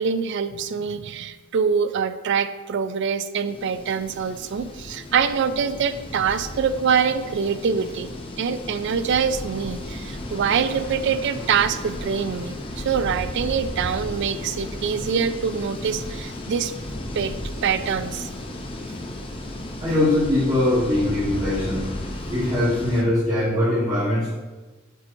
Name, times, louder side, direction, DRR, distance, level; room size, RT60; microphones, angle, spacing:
voice 1, 0.0-8.1 8.4-16.7 17.1-17.3 17.6-18.3, right 6 dB, 55° right, 12 dB, 0.3 m, -24 dB
sound 1, 3.5-23.0, left 1 dB, 25° left, 0.6 m, -34 dB
voice 2, 19.8-21.9 22.3-24.3, left 1 dB, 20° right, -9 dB, 1.4 m, -21 dB
8.3 x 4.4 x 2.6 m, 1.2 s
head